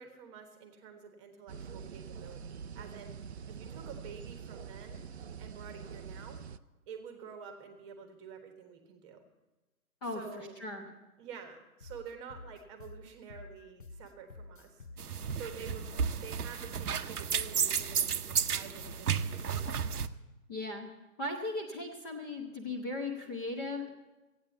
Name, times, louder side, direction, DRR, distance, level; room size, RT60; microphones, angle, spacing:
voice 1, 0.0-3.1 3.5-5.0 5.4-6.4 6.9-9.2 10.1-10.6 11.2-14.9 15.3-15.9 16.2-19.6, right 6 dB, 20° right, 5 dB, 1.3 m, -48 dB
sound 1, 1.5-6.6, right 6 dB, 50° right, 0.4 m, -45 dB
voice 2, 10.0-10.9 20.5-20.9 21.2-23.9, left 2 dB, 15° left, 1 dB, 0.9 m, -37 dB
sound 2, 11.8-19.8, left 3 dB, 35° left, 0.5 m, -50 dB
sound 3, 15.0-20.1, right 7 dB, 80° right, 0.8 m, -33 dB
14.0 x 9.2 x 8.0 m, 1.1 s
figure-of-eight pair, 145°, 45 cm